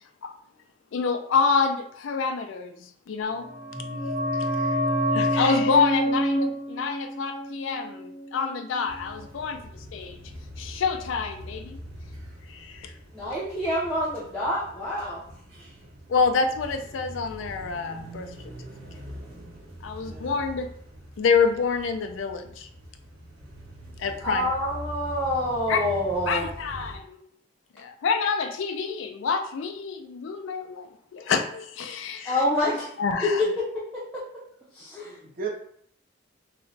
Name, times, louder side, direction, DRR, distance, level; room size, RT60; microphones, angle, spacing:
voice 1, 0.9-3.5 4.4-4.8 5.1-10.2 10.6-11.8 12.5-12.9 16.1-18.3 19.8-20.7 21.2-22.7 24.0-24.4 25.7-25.8 26.3-27.2 27.8-32.4 33.0-33.4, left 5 dB, 80° left, 6 dB, 0.4 m, -27 dB
sound 1, 3.3-8.7 9.0-9.1, equal, 65° right, 1.4 m, -27 dB
sound 2, 8.8-27.0, equal, 90° right, 1.1 m, -43 dB
voice 2, 13.1-15.2 24.2-26.5 32.2-32.9 33.2-34.2 34.7-35.2, left 1 dB, 5° left, -9 dB, 0.6 m, -27 dB
voice 3, 20.0-20.4 35.0-35.5, right 6 dB, 45° right, -1 dB, 0.7 m, -36 dB
3.0 x 2.1 x 3.9 m, 0.65 s
head